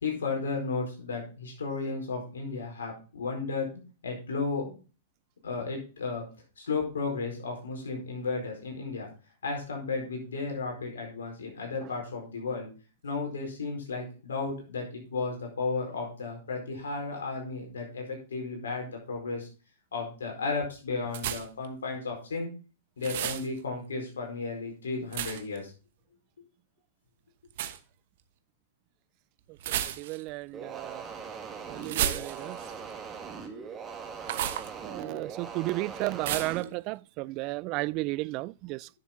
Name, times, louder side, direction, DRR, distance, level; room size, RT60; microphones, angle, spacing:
voice 1, 0.0-3.7 4.0-4.7 5.4-6.3 6.6-9.1 9.4-12.7 13.0-19.5 19.9-22.5 23.0-25.7, left 4 dB, 80° left, 4.5 m, -34 dB
sound 1, 21.1-21.7 23.0-23.5 25.1-25.6 27.5-27.8 29.6-30.3 31.8-32.7 34.2-34.7 36.2-36.6, right 11 dB, 60° right, 1.1 m, -32 dB
voice 2, 29.8-31.0 31.7-32.6 34.8-38.9, right 21 dB, 45° right, 0.3 m, -33 dB
sound 2, 30.5-36.7, right 6 dB, 25° right, 2.0 m, -41 dB
10.5 x 7.0 x 3.8 m
hypercardioid pair, 115°, 0 cm